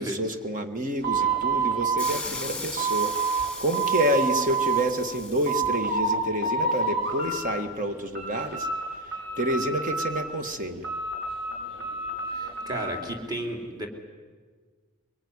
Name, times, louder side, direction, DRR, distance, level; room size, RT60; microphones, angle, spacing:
voice 1, 0.0-8.7 9.1-10.9, right 1 dB, 40° right, 7 dB, 1.8 m, -29 dB
sound 1, 1.0-3.5 3.7-4.8 5.2-6.1 6.4-7.5 7.8-8.8 9.1-10.4 10.8-12.9, right 4 dB, 60° right, 7.3 m, -28 dB
sound 2, 2.0-5.8, left 3 dB, 5° left, 2.8 m, -38 dB
voice 2, 12.3-13.9, right 1 dB, 20° right, 2 dB, 3.3 m, -33 dB
23.0 x 23.0 x 9.8 m, 1.5 s
head